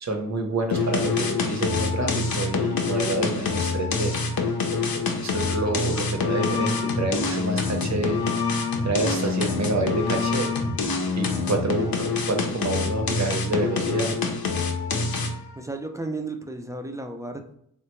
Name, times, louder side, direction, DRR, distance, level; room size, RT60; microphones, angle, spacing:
voice 1, 0.0-4.2 5.2-8.2 8.8-10.5 11.2-14.1, right 2 dB, 50° right, 4 dB, 0.7 m, -28 dB
sound 1, 0.7-15.5, left 4 dB, 85° left, 0.6 m, -26 dB
voice 2, 15.5-17.5, right 2 dB, 10° right, 5 dB, 0.3 m, -34 dB
3.5 x 2.2 x 3.0 m, 0.71 s
wide cardioid pair, 80°, 35 cm